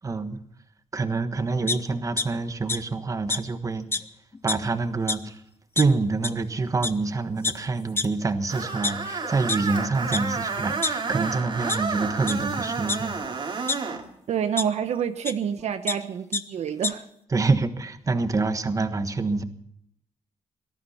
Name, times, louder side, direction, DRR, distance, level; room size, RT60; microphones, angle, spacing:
voice 1, 0.0-0.4 0.9-3.9 4.4-5.4 5.8-13.5 17.3-19.4, right 3 dB, 30° right, 1.3 m, -26 dB
sound 1, 1.7-2.2 2.7-2.8 3.3-3.4 3.9-4.0 4.3-4.7 5.1-5.2 5.8-5.9 6.2-6.3 6.8-6.9 7.4-7.5 8.0-8.1 8.6-9.6 10.1-10.2 10.6-11.3 11.7-11.8 12.2-12.3 12.9-13.8 14.6-14.7 15.2-15.3 15.6-15.9 16.3-16.4 16.7-16.9, left 3 dB, 20° left, 0.9 m, -27 dB
Screech, 8.5-14.0, right 4 dB, 45° right, 2.5 m, -30 dB
voice 2, 14.3-17.0, right 8 dB, 70° right, 1.0 m, -27 dB
18.5 x 13.0 x 5.7 m
cardioid pair, 115°, 12 cm